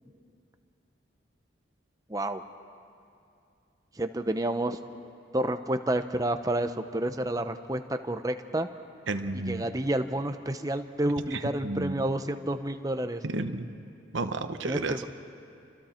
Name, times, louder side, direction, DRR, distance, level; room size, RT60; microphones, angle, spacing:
voice 1, 2.1-2.4 4.0-4.8 5.3-8.7 9.5-13.2 14.6-15.1, right 1 dB, 20° right, 8 dB, 0.7 m, -29 dB
voice 2, 9.1-9.7 11.3-12.0 13.2-13.7 14.1-15.1, right 2 dB, 90° right, 8 dB, 1.1 m, -32 dB
29.5 x 25.0 x 4.4 m, 2.5 s
head